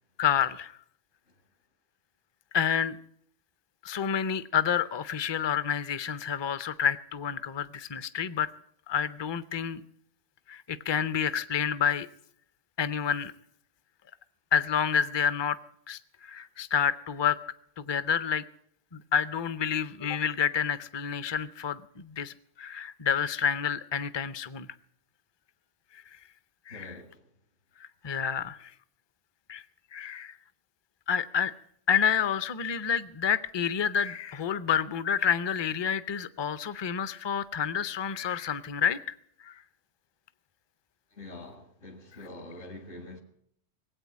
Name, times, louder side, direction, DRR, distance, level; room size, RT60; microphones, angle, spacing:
voice 1, 0.2-0.8 2.5-3.0 3.8-8.5 8.9-9.8 10.5-12.1 12.8-13.3 14.5-15.6 15.9-17.4 17.8-18.4 18.9-24.7 25.9-26.0 26.7-26.9 28.0-28.7 29.5-29.6 29.9-30.4 31.1-31.5 31.9-39.1 39.4-39.6, left 8 dB, 35° left, 0.4 m, -29 dB
voice 2, 26.7-27.3 41.1-43.2, left 2 dB, 65° left, 2.1 m, -45 dB
19.0 x 8.5 x 8.4 m
omnidirectional pair, 1.2 m